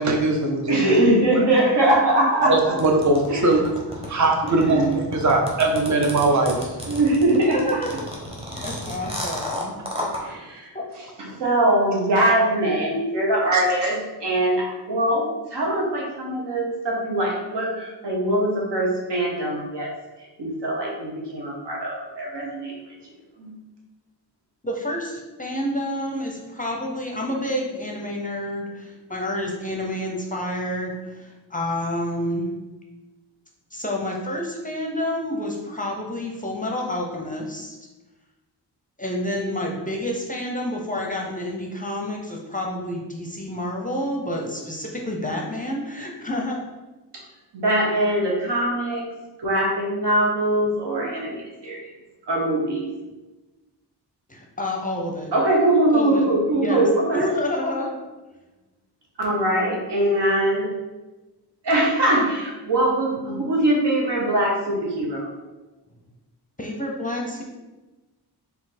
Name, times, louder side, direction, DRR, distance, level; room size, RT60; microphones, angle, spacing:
voice 1, 0.0-1.0 2.4-3.6 3.9-7.0 10.2-10.3 13.5-13.6, right 2 dB, 45° right, 2 dB, 0.7 m, -21 dB
voice 2, 0.7-2.8 3.3-3.6 4.4-5.0 6.8-8.0 8.5-8.7 10.2-19.9 20.2-22.9 23.4-23.5 47.1-47.2 47.5-49.1 49.4-51.9 52.3-52.9 55.3-57.4 59.2-60.7 61.6-65.3, right 1 dB, 75° right, -2 dB, 1.2 m, -22 dB
sound 1, 2.8-10.2, left 1 dB, 15° right, 0.9 m, -31 dB
voice 3, 8.6-9.8 10.7-10.8 24.6-32.5 33.7-37.8 39.0-46.6 51.0-51.1 54.3-55.3 55.9-56.2 56.5-56.8 57.1-58.0 66.6-67.4, left 1 dB, 20° left, 0 dB, 0.5 m, -29 dB
4.2 x 2.7 x 4.1 m, 1.1 s
wide cardioid pair, 125°, 42 cm